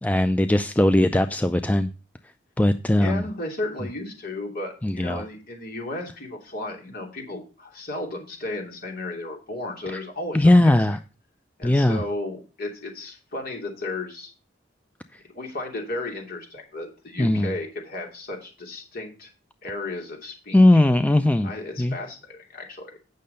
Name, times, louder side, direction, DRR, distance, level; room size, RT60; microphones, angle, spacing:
voice 1, 0.0-1.9 2.6-3.2 4.8-5.2 9.9-10.0 10.3-11.0 11.6-12.0 17.2-17.5 20.5-21.5 21.8-22.0, left 1 dB, 10° left, 10 dB, 0.4 m, -19 dB
voice 2, 3.0-10.5 11.6-14.3 15.3-19.3 19.6-20.8 21.4-23.0, left 2 dB, 55° left, 1 dB, 2.9 m, -34 dB
8.6 x 6.4 x 5.4 m, 0.32 s
head